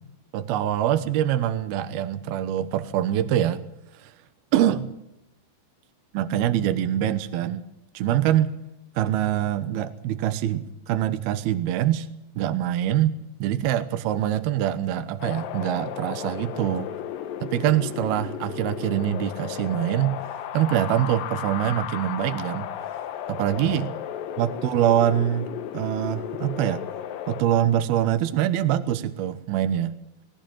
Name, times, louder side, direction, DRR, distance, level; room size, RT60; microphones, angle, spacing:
voice 1, 0.3-3.6 3.9-4.1 4.5-5.0 6.1-7.7 7.9-8.5 9.0-12.1 12.4-16.9 17.4-20.2 20.5-22.7 23.3-23.9 24.4-26.9 27.3-29.9, right 11 dB, 70° right, 11 dB, 2.5 m, -24 dB
Wind, 15.2-27.4, left 10 dB, 75° left, 2.1 m, -34 dB
19.5 x 19.0 x 7.7 m, 0.81 s
omnidirectional pair, 5.5 m